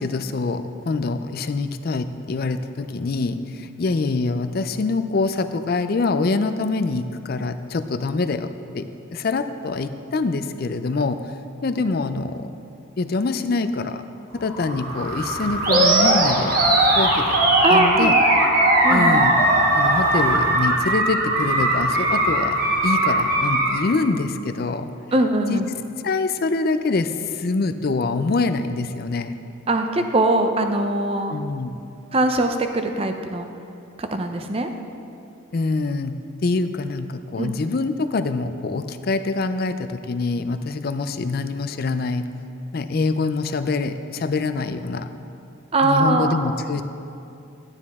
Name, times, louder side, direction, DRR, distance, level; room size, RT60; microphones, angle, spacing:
voice 1, 0.0-11.2 11.6-12.5 13.0-14.0 14.3-16.6 17.0-17.4 17.7-18.1 18.9-19.4 19.7-24.9 25.5-25.6 26.0-29.3 31.3-31.8 35.5-36.1 36.4-42.3 42.7-45.1 45.8-46.8, left 3 dB, 45° left, 10 dB, 0.4 m, -25 dB
sound 1, 14.3-24.0, right 1 dB, 90° right, 2.7 m, -26 dB
Animal, 15.6-23.8, right 1 dB, 45° right, 1.3 m, -19 dB
voice 2, 17.6-18.2 18.8-19.3 25.1-25.6 29.7-31.4 32.1-33.5 34.0-34.7 37.4-37.6 45.7-46.5, right 2 dB, 25° right, 6 dB, 0.5 m, -21 dB
12.0 x 9.8 x 3.6 m, 2.5 s
head